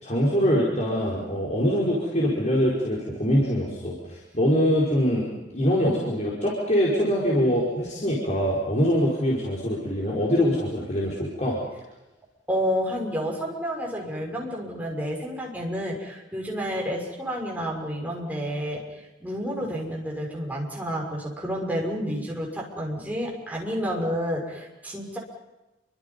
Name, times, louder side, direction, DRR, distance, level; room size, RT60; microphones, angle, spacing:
voice 1, 0.0-11.6, equal, 40° left, -5 dB, 5.1 m, -24 dB
voice 2, 12.5-18.8 19.2-25.2, equal, 10° right, -2 dB, 6.1 m, -30 dB
29.5 x 24.5 x 5.5 m, 1.0 s
head